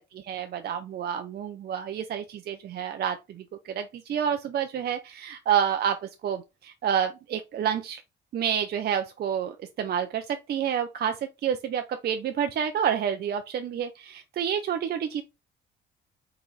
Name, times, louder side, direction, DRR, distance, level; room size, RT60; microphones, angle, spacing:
voice 1, 0.1-3.4 3.7-8.0 8.3-15.2, right 8 dB, 55° right, 0.5 m, -29 dB
3.9 x 2.9 x 3.8 m
cardioid pair, 90°, 20 cm